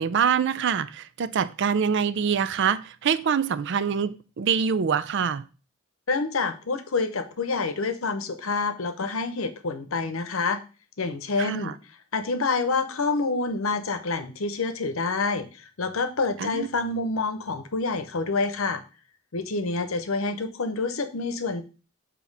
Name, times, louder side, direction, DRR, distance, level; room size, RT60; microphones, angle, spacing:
voice 1, 0.0-5.4 11.4-11.7 16.4-16.7, right 7 dB, 60° right, 0.4 m, -25 dB
voice 2, 6.1-10.6 11.0-11.7 12.1-18.8 19.3-21.6, left 3 dB, 90° left, 0.8 m, -27 dB
7.1 x 2.9 x 5.3 m
head